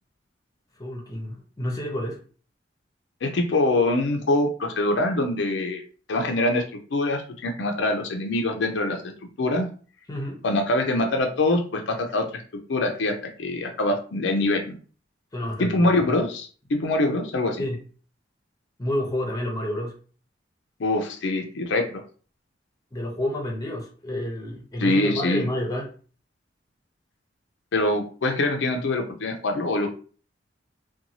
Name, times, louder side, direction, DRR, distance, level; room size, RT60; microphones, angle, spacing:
voice 1, 0.8-2.2 10.1-10.4 15.3-15.8 17.6-17.8 18.8-20.0 22.9-25.9, left 1 dB, 20° left, 0 dB, 0.6 m, -29 dB
voice 2, 3.2-5.8 6.1-6.6 6.9-9.0 9.4-9.7 10.4-12.4 12.7-13.1 13.4-14.8 15.6-17.7 20.8-21.9 24.8-25.5 27.7-30.0, left 2 dB, 75° left, 3 dB, 0.5 m, -24 dB
2.6 x 2.2 x 2.8 m, 0.40 s
head